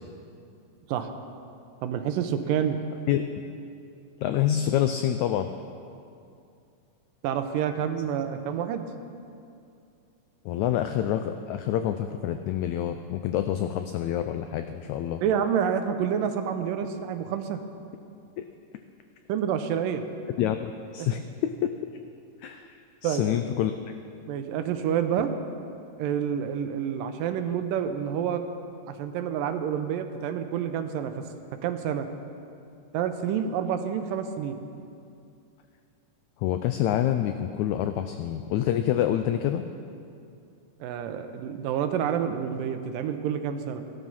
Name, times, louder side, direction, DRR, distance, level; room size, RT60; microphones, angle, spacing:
voice 1, 1.8-2.8 7.2-8.9 15.2-17.6 19.3-20.0 21.0-21.1 23.0-23.2 24.3-25.3 26.0-28.4 28.9-31.1 31.6-32.1 32.9-34.6 40.8-43.8, right 8 dB, 90° right, 7 dB, 2.5 m, -28 dB
voice 2, 4.2-5.5 10.5-15.2 18.4-18.5 20.4-21.5 22.4-23.7 36.4-39.7, left 11 dB, 80° left, 8 dB, 1.7 m, -27 dB
16.0 x 12.5 x 5.6 m, 2.5 s
omnidirectional pair, 3.8 m